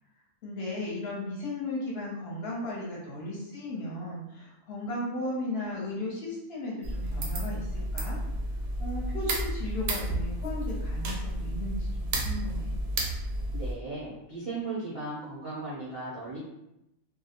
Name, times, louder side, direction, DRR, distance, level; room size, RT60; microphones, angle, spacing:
voice 1, 0.4-8.2 8.8-12.7, left 1 dB, 55° left, -5 dB, 0.8 m, -36 dB
sound 1, 6.8-13.7, right 1 dB, 75° right, 0.9 m, -31 dB
voice 2, 13.5-16.4, right 3 dB, 45° right, -9 dB, 0.4 m, -36 dB
2.3 x 2.0 x 2.8 m, 0.88 s
omnidirectional pair, 1.4 m